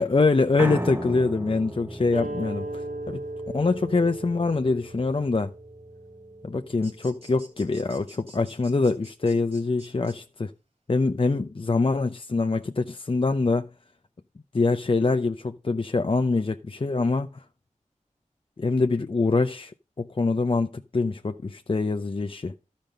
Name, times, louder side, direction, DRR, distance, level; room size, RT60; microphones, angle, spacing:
voice 1, 0.0-3.2 3.5-5.5 6.4-10.5 10.9-13.7 14.5-17.4 18.6-22.5, left 3 dB, 40° left, 0.6 m, -24 dB
Piano, 0.6-6.8, right 1 dB, 20° right, 0.8 m, -37 dB
sound 1, 2.1-7.3, right 2 dB, 75° right, 2.5 m, -38 dB
sound 2, 6.8-10.2, right 2 dB, 50° right, 2.8 m, -50 dB
12.5 x 5.2 x 5.4 m
wide cardioid pair, 45°, 13 cm